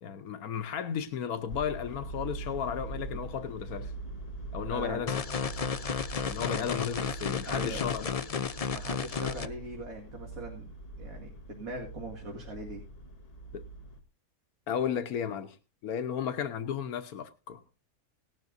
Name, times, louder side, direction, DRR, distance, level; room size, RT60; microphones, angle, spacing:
voice 1, 0.0-3.9 4.5-5.2 6.2-8.5 13.5-13.6 14.7-15.6 15.8-17.6, left 8 dB, 90° left, 1.4 m, -34 dB
sound 1, 1.5-14.0, right 2 dB, 25° left, 1.3 m, -42 dB
voice 2, 4.7-5.0 6.4-6.7 7.4-7.8 8.7-10.7 11.0-12.8, right 1 dB, 70° right, 2.8 m, -40 dB
sound 2, 5.1-9.5, left 6 dB, 50° left, 0.4 m, -33 dB
18.0 x 12.0 x 2.6 m
omnidirectional pair, 1.5 m